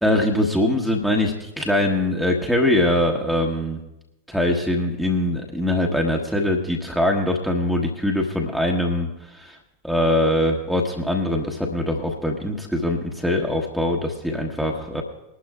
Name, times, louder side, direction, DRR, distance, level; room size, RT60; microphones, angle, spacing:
voice 1, 0.0-3.8 4.3-9.6 9.8-15.0, left 1 dB, ahead, 0 dB, 1.3 m, -22 dB
21.5 x 12.0 x 2.4 m, 0.91 s
figure-of-eight pair, 90°, 0 cm